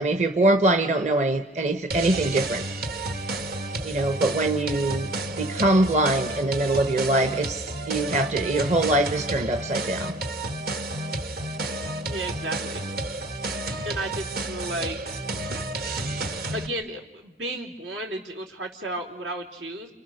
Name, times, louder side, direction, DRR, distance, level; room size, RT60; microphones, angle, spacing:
voice 1, 0.0-2.6 3.8-5.1 5.4-10.1, right 2 dB, 40° right, 7 dB, 1.0 m, -23 dB
sound 1, 1.9-16.7, right 2 dB, 55° right, 1.5 m, -31 dB
voice 2, 12.1-12.8 13.8-15.0 16.5-19.9, right 1 dB, 85° right, 1 dB, 3.9 m, -33 dB
30.0 x 29.0 x 6.6 m, 0.98 s
head